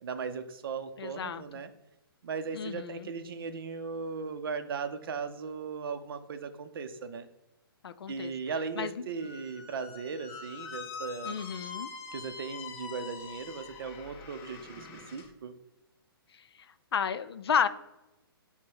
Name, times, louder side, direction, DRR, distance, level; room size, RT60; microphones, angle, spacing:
voice 1, 0.0-1.7 2.2-7.3 8.1-11.4 12.1-15.5, right 5 dB, 65° right, 9 dB, 0.5 m, -37 dB
voice 2, 1.0-1.4 2.5-3.1 7.8-8.3 8.8-8.9 11.3-11.9 16.9-17.7, left 7 dB, 90° left, 12 dB, 0.4 m, -31 dB
Squeak, 9.2-15.3, left 5 dB, 20° left, 0.5 m, -44 dB
5.9 x 2.1 x 3.7 m, 0.94 s
hypercardioid pair, 155°, 13 cm